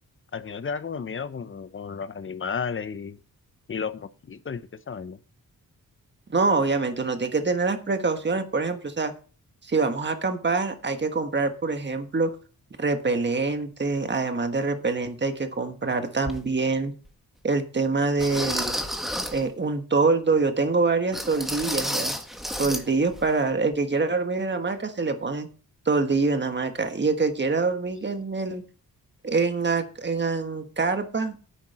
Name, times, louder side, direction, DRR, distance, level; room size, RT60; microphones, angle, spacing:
voice 1, 0.3-3.2 3.7-5.2, left 6 dB, 35° left, 13 dB, 0.7 m, -33 dB
voice 2, 6.3-9.1 9.6-12.3 12.8-16.9 17.4-18.8 19.3-22.2 22.6-25.5 25.8-28.6 29.2-31.4, right 3 dB, 30° right, 7 dB, 1.4 m, -25 dB
sound 1, 16.3-16.4 17.1-17.2 18.2-19.5 21.1-22.9 23.1-23.3 23.7-23.8, equal, ahead, 1.4 m, -30 dB
10.0 x 8.7 x 4.2 m, 0.38 s
wide cardioid pair, 135°, 36 cm